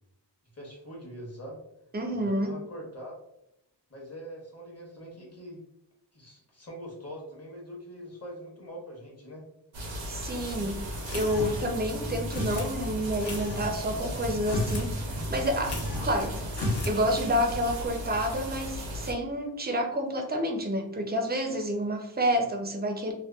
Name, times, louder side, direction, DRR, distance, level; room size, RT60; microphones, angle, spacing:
voice 1, 0.5-1.6 2.1-3.1 3.9-5.6 6.1-9.4, equal, 35° left, -2 dB, 0.8 m, -43 dB
voice 2, 1.9-2.5 10.1-10.8 11.1-15.8 16.0-16.4 16.9-23.1, equal, 25° right, 3 dB, 0.4 m, -29 dB
sound 1, 9.7-19.1, equal, 90° right, 0.7 m, -36 dB
sound 2, 11.1-11.7 12.3-12.7 13.2-13.7 14.4-14.9 15.2-15.3 15.6-16.2 16.5-17.0, left 1 dB, 65° left, 0.7 m, -32 dB
2.8 x 2.1 x 2.2 m, 0.83 s
wide cardioid pair, 60°, 44 cm